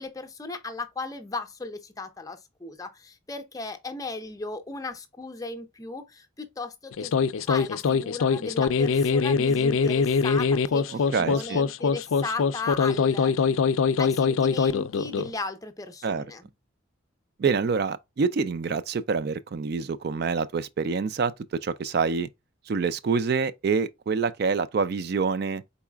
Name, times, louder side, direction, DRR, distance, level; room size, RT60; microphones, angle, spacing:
voice 1, 0.0-7.1 7.5-13.5 14.0-16.5, left 3 dB, 15° left, 0.6 m, -36 dB
sound 1, 6.9-15.3, left 5 dB, 85° left, 0.4 m, -23 dB
voice 2, 10.9-11.6 16.0-16.2 17.4-22.3 22.7-25.6, right 5 dB, 50° right, 0.3 m, -26 dB
4.6 x 4.1 x 2.3 m
head